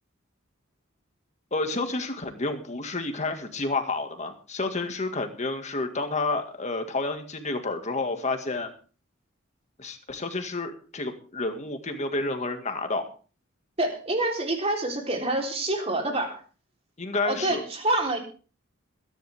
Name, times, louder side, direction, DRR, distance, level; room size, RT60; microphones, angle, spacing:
voice 1, 1.5-8.7 9.8-13.1 17.0-17.6, left 3 dB, 35° left, 6 dB, 2.0 m, -30 dB
voice 2, 13.8-16.4 17.3-18.2, right 2 dB, 30° right, 1 dB, 3.8 m, -27 dB
22.0 x 10.5 x 3.6 m, 0.38 s
head